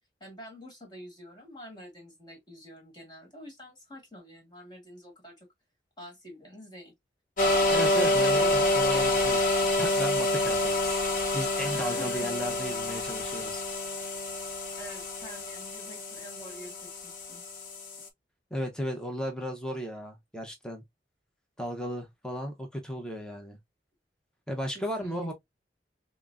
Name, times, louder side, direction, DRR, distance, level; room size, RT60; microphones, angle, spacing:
voice 1, 0.2-5.4 6.0-6.9 8.0-9.0 11.6-12.3 14.8-17.4 24.7-25.3, equal, 25° left, 1.5 m, -47 dB
sound 1, 7.4-18.1, left 1 dB, 50° left, 0.8 m, -27 dB
voice 2, 7.7-9.4 9.8-11.0 11.3-13.6 18.5-20.8 21.6-23.6 24.5-25.3, equal, 5° left, 0.7 m, -35 dB
5.8 x 2.0 x 2.5 m
head